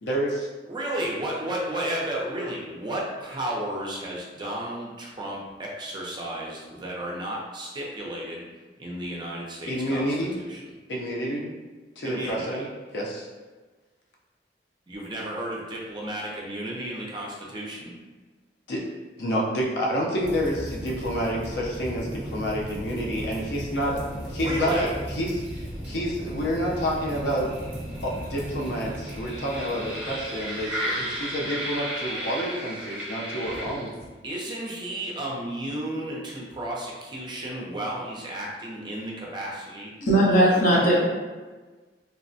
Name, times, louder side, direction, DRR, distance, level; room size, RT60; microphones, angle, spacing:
voice 1, 0.0-0.5 9.7-10.4 10.9-11.5 12.0-12.7 12.9-13.3 18.7-18.9 19.2-24.0 24.3-33.9, equal, 70° left, -3 dB, 0.5 m, -29 dB
voice 2, 0.7-8.5 8.8-10.1 10.4-10.6 12.0-12.6 14.9-18.0 24.4-24.9 34.2-39.9 40.3-40.4 40.7-40.8, right 1 dB, 25° right, -3 dB, 0.5 m, -33 dB
sound 1, 20.2-34.1, equal, 10° right, 1.0 m, -35 dB
voice 3, 40.1-41.0, right 1 dB, 50° left, -5 dB, 0.8 m, -18 dB
3.3 x 2.1 x 2.6 m, 1.3 s
head